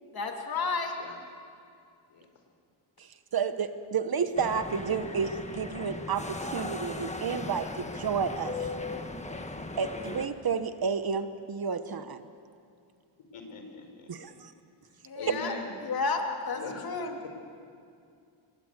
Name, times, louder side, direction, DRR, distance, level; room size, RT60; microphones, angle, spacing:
voice 1, 0.1-0.9 15.1-15.5 15.8-17.2, left 4 dB, 45° left, 3 dB, 2.6 m, -31 dB
voice 2, 3.3-8.7 9.8-12.2 14.1-14.5 15.3-15.4, right 6 dB, 45° right, 10 dB, 1.2 m, -31 dB
sound 1, 4.4-10.3, left 3 dB, 15° left, 1.3 m, -38 dB
voice 3, 13.3-14.1 15.1-15.7 16.5-16.9, left 3 dB, 85° left, 4 dB, 5.0 m, -40 dB
27.5 x 23.0 x 8.2 m, 2.4 s
wide cardioid pair, 175°, 50 cm